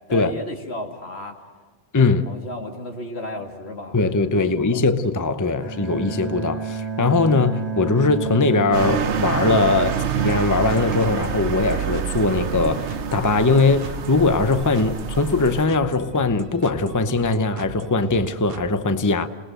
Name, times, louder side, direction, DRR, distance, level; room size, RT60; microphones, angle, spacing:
voice 1, 0.1-1.4 2.3-4.0 4.5-4.9, left 1 dB, 70° left, 2.7 m, -34 dB
voice 2, 1.9-2.3 3.9-19.3, left 3 dB, 20° left, 0.8 m, -20 dB
Bowed string instrument, 5.6-10.6, right 5 dB, 25° right, 2.4 m, -31 dB
sound 1, 8.7-15.7, right 7 dB, 85° right, 1.2 m, -27 dB
sound 2, 10.2-18.7, right 6 dB, 60° right, 1.2 m, -39 dB
29.0 x 19.5 x 7.8 m
omnidirectional pair, 1.1 m